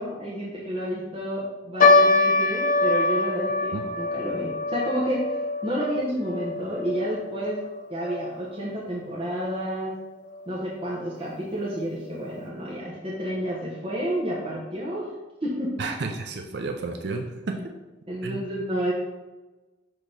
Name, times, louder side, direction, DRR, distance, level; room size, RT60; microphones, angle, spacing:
voice 1, 0.0-5.2 5.6-7.6 7.9-9.9 10.5-15.1 15.4-15.7 18.1-18.9, equal, 30° right, -6 dB, 1.0 m, -30 dB
sound 1, 1.8-8.3 8.6-8.7 9.4-9.7 10.3-10.4 10.7-10.9, left 3 dB, 45° left, 0.6 m, -24 dB
voice 2, 15.8-17.7 18.2-18.4, right 3 dB, 60° right, 3 dB, 0.5 m, -31 dB
6.2 x 3.0 x 5.1 m, 1.2 s
head